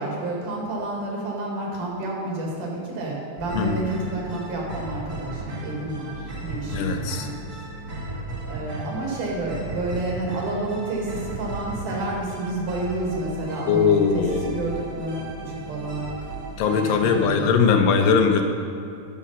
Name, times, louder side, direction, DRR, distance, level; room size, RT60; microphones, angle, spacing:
voice 1, 0.0-7.4 8.5-16.1 16.6-17.5, right 2 dB, 75° right, -2 dB, 3.4 m, -30 dB
sound 1, 3.4-17.4, right 2 dB, 35° right, 1.2 m, -35 dB
voice 2, 6.7-7.3 13.7-14.5 16.6-18.4, left 6 dB, 85° left, 5 dB, 2.4 m, -20 dB
9.5 x 6.4 x 5.6 m, 2.6 s
omnidirectional pair, 3.7 m